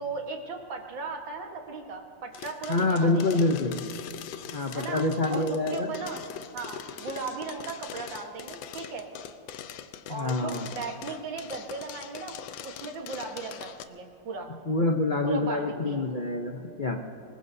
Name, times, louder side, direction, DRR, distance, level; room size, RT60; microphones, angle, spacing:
voice 1, 0.0-3.4 4.7-6.2 6.5-9.1 10.1-14.5 15.2-16.1, right 4 dB, 75° right, 2 dB, 2.2 m, -37 dB
sound 1, 2.3-13.8, left 9 dB, 80° left, 1.4 m, -42 dB
voice 2, 2.7-3.8 4.5-5.9 10.1-10.7 14.7-17.0, left 2 dB, 65° left, 3 dB, 0.4 m, -26 dB
25.0 x 20.5 x 2.7 m, 2.8 s
omnidirectional pair, 2.1 m